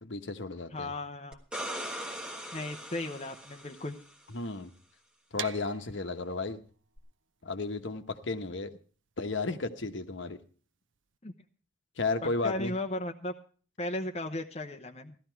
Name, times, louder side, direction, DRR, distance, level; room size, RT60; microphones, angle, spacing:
voice 1, 0.0-0.9 4.3-4.7 5.3-6.6 7.4-8.7 9.2-10.4 12.0-12.7, left 3 dB, 70° left, 8 dB, 1.1 m, -33 dB
voice 2, 0.7-1.4 2.5-4.0 11.2-11.3 12.2-13.3 13.8-15.2, left 2 dB, 30° left, 4 dB, 0.9 m, -36 dB
sound 1, 1.3-4.1 7.0-7.1, right 1 dB, 5° right, 1.4 m, -40 dB
sound 2, 5.4-11.2, right 9 dB, 75° right, 0.7 m, -46 dB
15.5 x 12.5 x 4.6 m, 0.40 s
head